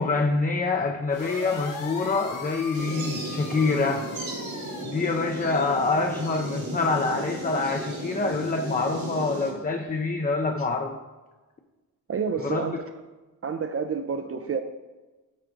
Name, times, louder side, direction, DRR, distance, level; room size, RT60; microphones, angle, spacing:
voice 1, 0.0-4.1 4.8-11.0 12.4-12.7, left 3 dB, 25° left, 3 dB, 0.4 m, -26 dB
sound 1, 1.1-4.8, left 4 dB, 60° left, 1.1 m, -39 dB
sound 2, 2.7-9.5, right 1 dB, 75° right, 2.1 m, -35 dB
voice 2, 12.1-12.8 13.4-14.6, right 6 dB, 40° right, 7 dB, 0.4 m, -29 dB
9.1 x 3.8 x 3.8 m, 1.2 s
cardioid pair, 100°, 36 cm